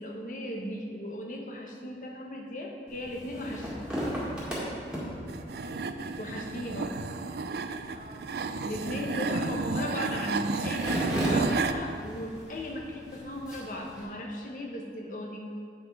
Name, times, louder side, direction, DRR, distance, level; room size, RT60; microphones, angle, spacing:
voice 1, 0.0-3.9 6.2-7.0 8.6-15.4, left 1 dB, 50° left, 1 dB, 1.1 m, -36 dB
sound 1, 2.9-14.0, equal, 5° right, 1.9 m, -37 dB
voice 2, 4.8-6.5 7.9-8.4, right 1 dB, 45° right, -1 dB, 1.2 m, -50 dB
sound 2, 5.3-11.7, right 4 dB, 65° right, 0.4 m, -32 dB
8.6 x 6.4 x 4.8 m, 2.4 s
head